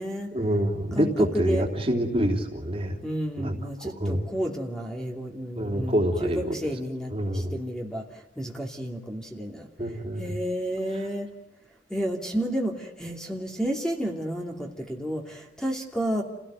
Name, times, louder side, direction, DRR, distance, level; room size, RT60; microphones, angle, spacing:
voice 1, 0.3-3.0 3.4-4.3 5.6-6.7 7.1-7.6 9.8-10.3 10.9-11.0, equal, 35° right, 3 dB, 3.3 m, -27 dB
voice 2, 1.3-1.6 3.0-8.0 8.4-9.7 10.2-11.3 11.9-16.2, equal, 5° left, 1 dB, 2.8 m, -31 dB
29.5 x 17.0 x 9.1 m, 1.0 s
head